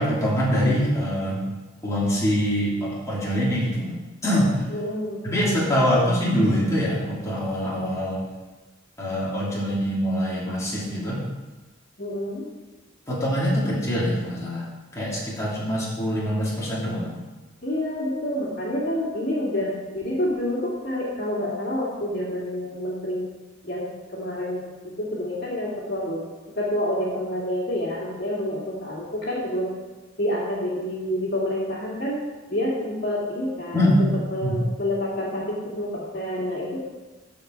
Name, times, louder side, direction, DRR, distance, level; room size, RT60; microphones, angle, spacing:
voice 1, 0.0-1.5 1.8-4.6 5.2-8.2 9.0-11.2 13.1-14.7 14.9-17.2 33.7-34.0 34.4-34.6, equal, 15° left, -7 dB, 3.0 m, -24 dB
voice 2, 4.7-6.0 12.0-12.4 17.6-23.3 23.6-23.9 24.1-24.6 25.0-26.2 26.5-29.7 30.2-32.2 32.5-36.8, left 1 dB, 55° left, -5 dB, 2.6 m, -28 dB
14.0 x 5.2 x 4.7 m, 1.2 s
head